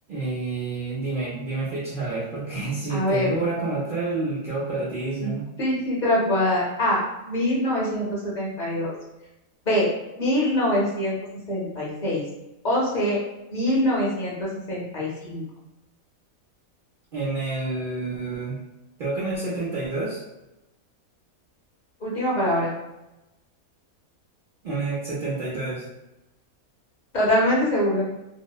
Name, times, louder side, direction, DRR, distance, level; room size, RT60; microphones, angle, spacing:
voice 1, 0.1-5.4 17.1-18.6 19.0-20.2 24.6-25.8, right 3 dB, 55° right, -9 dB, 0.6 m, -28 dB
voice 2, 2.9-3.3 5.2-5.3 5.6-8.9 9.7-9.9 10.2-11.1 11.5-12.2 12.6-13.2 13.5-15.4 22.0-22.7 27.1-28.1, left 1 dB, 40° left, -5 dB, 0.7 m, -24 dB
2.7 x 2.0 x 2.3 m, 0.97 s
omnidirectional pair, 1.5 m